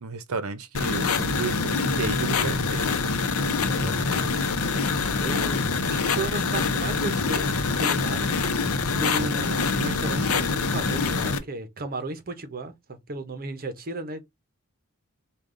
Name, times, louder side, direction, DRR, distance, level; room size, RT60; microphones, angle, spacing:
voice 1, 0.0-2.9, right 4 dB, 70° right, 0.7 m, -32 dB
sound 1, 0.7-11.4, left 4 dB, 70° left, 0.7 m, -25 dB
voice 2, 3.6-8.3 8.7-14.2, right 2 dB, 45° right, 0.9 m, -35 dB
5.1 x 2.4 x 3.8 m
head